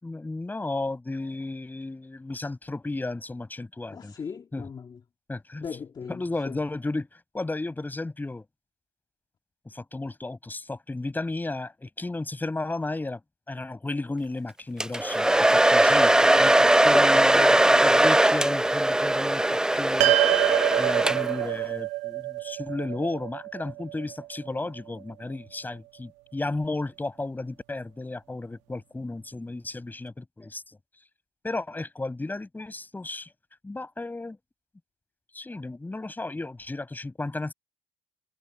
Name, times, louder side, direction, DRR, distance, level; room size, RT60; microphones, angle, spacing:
voice 1, 0.0-4.1 4.5-4.7 5.3-5.7 6.1-8.4 9.7-13.2 13.5-20.1 20.8-30.6 31.4-33.3 33.6-34.4 35.3-37.5, left 2 dB, 15° left, 6.1 m, -34 dB
voice 2, 3.9-5.0 5.6-6.2 6.5-6.6 16.9-17.8, left 6 dB, 35° left, 2.0 m, -37 dB
Domestic sounds home sounds, 14.8-21.5, right 1 dB, 5° right, 0.5 m, -20 dB
sound 1, 20.0-24.5, right 17 dB, 80° right, 1.2 m, -27 dB
supercardioid pair, 75°, 12 cm